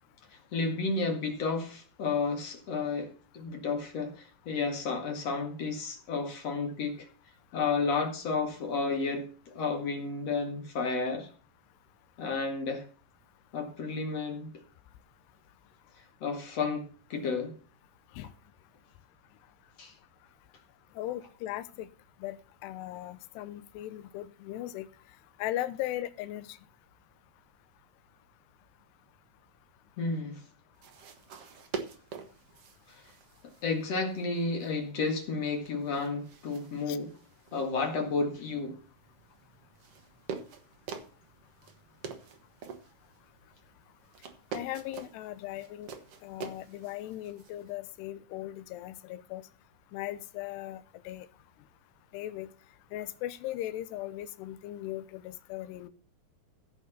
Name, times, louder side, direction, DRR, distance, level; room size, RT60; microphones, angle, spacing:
voice 1, 0.5-7.1 7.5-11.3 12.2-12.8 13.5-14.5 16.2-17.5 19.8-19.9 30.0-30.4 32.9-33.0 33.6-37.1 37.5-38.8, left 4 dB, 45° left, 2.4 m, -32 dB
voice 2, 21.0-21.9 22.2-24.9 25.4-26.6 36.9-37.0 44.5-45.9 46.2-49.5 49.9-51.3 52.1-52.5 52.9-55.9, left 14 dB, 80° left, 2.8 m, -38 dB
sound 1, 30.7-47.8, right 6 dB, 65° right, 1.5 m, -46 dB
16.0 x 5.8 x 6.6 m
omnidirectional pair, 4.8 m